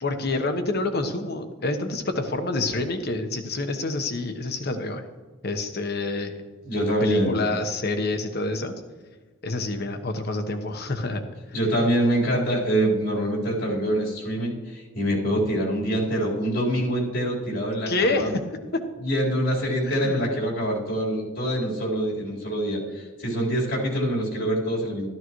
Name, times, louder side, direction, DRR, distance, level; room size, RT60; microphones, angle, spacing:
voice 1, 0.0-5.1 5.4-6.3 7.0-8.7 9.4-11.2 17.9-18.4 19.8-20.2, left 2 dB, 55° left, 7 dB, 1.1 m, -27 dB
voice 2, 6.6-7.5 11.5-18.3 19.0-25.1, right 1 dB, 80° left, -4 dB, 4.2 m, -25 dB
13.5 x 12.5 x 3.1 m, 1.4 s
head